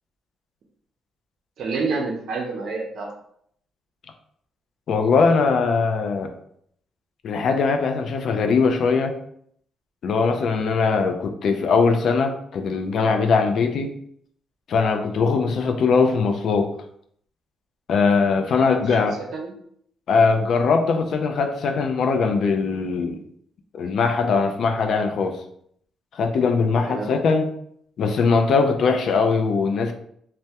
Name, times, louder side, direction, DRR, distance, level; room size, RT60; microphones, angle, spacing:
voice 1, 1.6-3.1 18.9-19.0 19.3-19.5 26.9-27.1, right 4 dB, 65° right, 0 dB, 0.5 m, -28 dB
voice 2, 4.9-6.3 7.2-9.1 10.0-13.9 14.7-16.7 17.9-19.2 20.1-23.2 23.7-25.4 26.1-27.5 28.0-29.9, left 4 dB, 65° left, 5 dB, 0.3 m, -21 dB
2.2 x 2.1 x 2.7 m, 0.67 s
cardioid pair, 90°, 0 cm